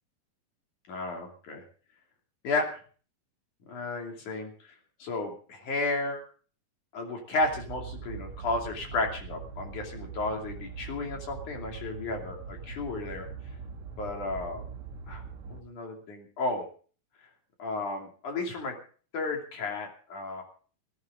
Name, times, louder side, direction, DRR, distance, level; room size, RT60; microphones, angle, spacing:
voice 1, 0.9-1.6 2.4-2.8 3.7-4.5 5.0-6.3 6.9-13.3 14.0-14.6 15.1-15.2 15.5-16.6 17.6-18.8 19.1-20.4, left 2 dB, 55° left, 2 dB, 4.0 m, -33 dB
sound 1, 7.4-15.6, right 5 dB, 55° right, 2.7 m, -42 dB
18.0 x 14.5 x 3.8 m, 0.41 s
omnidirectional pair, 4.2 m